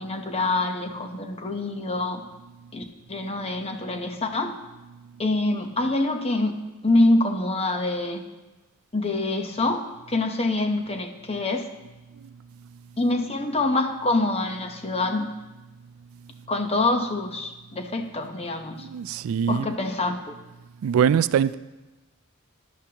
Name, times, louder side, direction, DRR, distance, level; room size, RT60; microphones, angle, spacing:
voice 1, 0.0-2.2 2.7-4.5 5.2-6.5 6.8-8.2 8.9-11.7 13.0-15.3 16.5-18.9 19.5-20.4, left 2 dB, 30° left, 0.9 m, -25 dB
voice 2, 18.8-19.7 20.8-21.5, right 8 dB, 65° right, 0.3 m, -22 dB
14.5 x 11.5 x 2.9 m
head